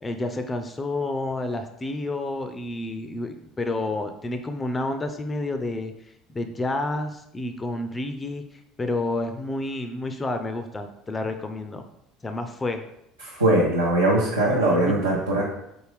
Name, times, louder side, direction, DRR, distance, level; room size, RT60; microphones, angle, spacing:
voice 1, 0.0-5.9 6.3-8.4 8.8-11.8 12.2-12.8 14.7-15.0, left 2 dB, 20° left, 7 dB, 0.4 m, -29 dB
voice 2, 13.2-15.4, right 1 dB, 80° right, -6 dB, 0.7 m, -21 dB
4.0 x 3.4 x 3.4 m, 0.80 s
figure-of-eight pair, 65°, 0 cm